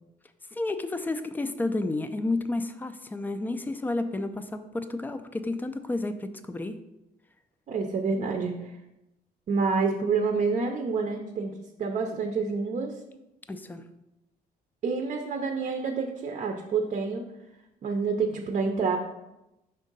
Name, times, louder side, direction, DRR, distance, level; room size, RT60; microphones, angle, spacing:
voice 1, 0.5-6.8 13.5-13.9, left 2 dB, 10° left, 10 dB, 0.4 m, -31 dB
voice 2, 7.7-8.8 9.5-13.0 14.8-17.3 17.8-19.0, right 4 dB, 45° right, 4 dB, 0.6 m, -28 dB
5.5 x 3.6 x 5.3 m, 0.92 s
cardioid pair, 135°, 17 cm